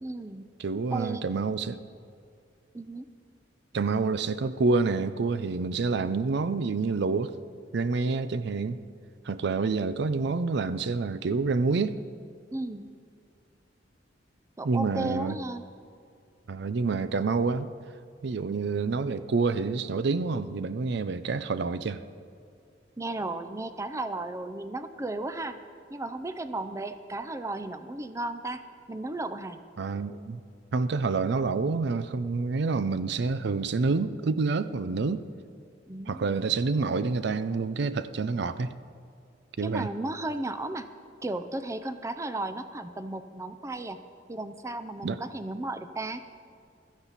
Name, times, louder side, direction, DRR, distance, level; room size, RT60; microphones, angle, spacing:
voice 1, 0.0-0.5 0.9-1.3 2.7-3.1 12.5-12.9 14.6-15.6 23.0-25.6 25.9-28.6 28.9-29.6 35.9-36.4 39.6-40.9 41.2-44.0 44.3-46.2, right 2 dB, 15° right, 11 dB, 0.5 m, -34 dB
voice 2, 0.6-1.8 3.7-7.4 7.7-8.8 9.2-12.0 14.6-15.4 16.5-17.7 18.2-22.0 29.8-30.4 30.7-35.2 36.1-38.7 39.6-39.9 45.0-45.2, right 4 dB, 65° right, 13 dB, 0.5 m, -28 dB
16.0 x 13.5 x 4.1 m, 2.3 s
head